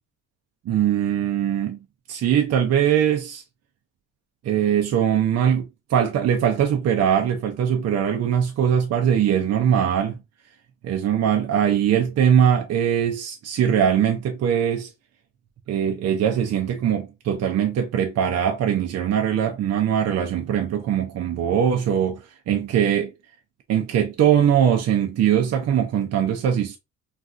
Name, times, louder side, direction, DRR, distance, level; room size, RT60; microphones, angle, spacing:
voice 1, 0.7-1.8 2.1-3.4 4.4-10.2 10.8-14.9 15.7-23.1 23.7-26.8, right 9 dB, 55° right, 0.5 m, -21 dB
3.1 x 2.5 x 2.4 m
cardioid pair, 90°, 30 cm